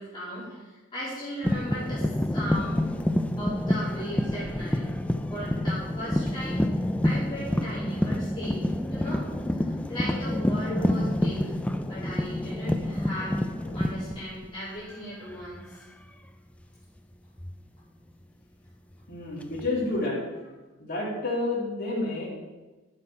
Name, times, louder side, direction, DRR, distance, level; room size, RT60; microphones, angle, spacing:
voice 1, 0.0-2.9 3.4-4.9 5.3-6.6 7.0-11.5 11.9-15.8, equal, 25° left, -11 dB, 3.1 m, -37 dB
sound 1, 1.4-14.9 15.2-15.6 17.4-17.6 19.4-20.0, left 1 dB, 5° left, 0.3 m, -28 dB
voice 2, 19.1-20.5 20.8-22.3, left 2 dB, 45° left, -5 dB, 2.8 m, -29 dB
10.5 x 6.0 x 4.4 m, 1.2 s
head